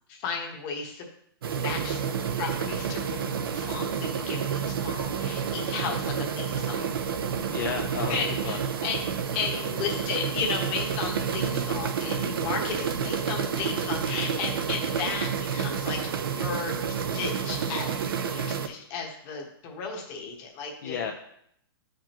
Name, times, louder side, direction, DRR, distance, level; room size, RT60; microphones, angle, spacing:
voice 1, 0.1-1.1 1.6-6.9 8.1-9.0 9.3-18.0 18.3-21.1, left 5 dB, 25° left, 1 dB, 1.2 m, -34 dB
sound 1, 1.4-18.7, right 7 dB, 70° right, 0.8 m, -30 dB
voice 2, 7.5-8.6 20.8-21.1, left 7 dB, 50° left, 1 dB, 0.7 m, -32 dB
11.5 x 5.0 x 3.0 m, 0.70 s
hypercardioid pair, 170°, 13 cm